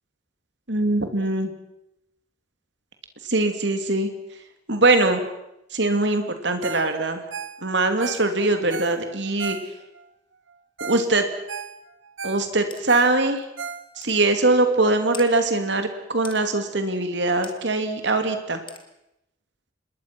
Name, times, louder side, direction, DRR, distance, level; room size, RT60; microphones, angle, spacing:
voice 1, 0.7-1.5 3.2-4.1 4.7-5.2 5.7-7.2 7.6-9.6 10.8-11.3 12.2-13.4 14.0-18.6, right 2 dB, 65° right, 7 dB, 2.8 m, -22 dB
Ringtone, 6.6-6.9 7.2-10.0 10.5-10.6 10.8-11.1 11.3-14.2 14.7-14.8, right 6 dB, 90° right, 1.6 m, -36 dB
sound 1, 12.7-12.8 13.4-13.5 14.0-14.2 15.1-15.3 16.2-16.4 17.4-17.6 18.7-18.8, left 7 dB, 25° left, 2.0 m, -40 dB
26.5 x 21.5 x 6.2 m, 0.87 s
head